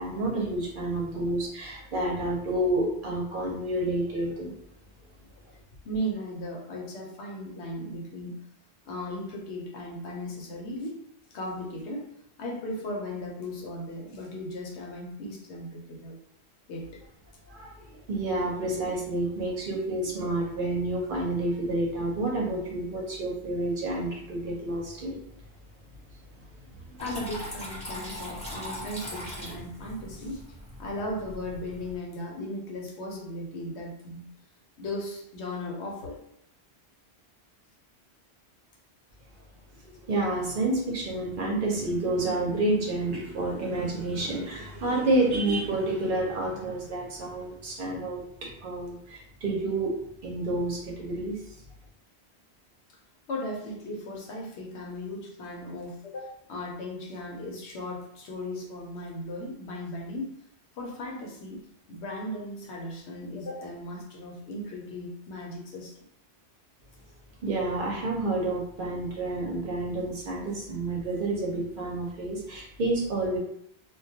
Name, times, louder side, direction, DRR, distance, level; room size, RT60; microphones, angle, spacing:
voice 1, 0.0-4.5 17.5-25.2 26.3-26.4 26.7-27.0 39.8-49.9 50.2-51.6 67.4-73.4, right 2 dB, 60° right, -2 dB, 0.7 m, -29 dB
voice 2, 5.8-8.4 8.9-11.0 11.3-12.1 12.4-16.1 16.7-17.0 27.0-30.4 30.8-34.3 34.8-36.2 53.3-60.3 60.8-65.9, left 1 dB, 80° left, -1 dB, 0.9 m, -37 dB
Water tap faucet / Trickle dribble, 27.0-32.0, equal, 5° left, 1.0 m, -40 dB
2.2 x 2.2 x 2.7 m, 0.72 s
omnidirectional pair, 1.1 m